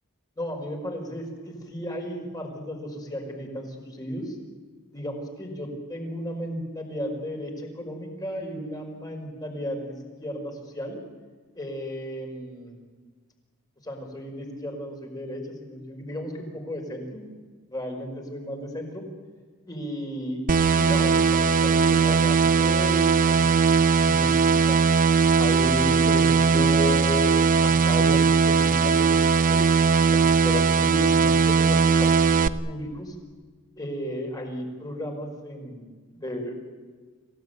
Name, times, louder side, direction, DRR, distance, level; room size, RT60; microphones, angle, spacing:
voice 1, 0.4-4.4 4.9-9.9 10.2-11.0 11.5-12.8 13.8-17.3 17.7-19.0 19.7-20.4 20.8-24.8 25.4-29.7 30.1-33.2 33.8-35.9 36.2-36.6, equal, 20° left, 2 dB, 5.4 m, -34 dB
sound 1, 20.5-32.5, right 5 dB, 40° right, 0.7 m, -19 dB
27.5 x 17.5 x 9.4 m, 1.4 s
head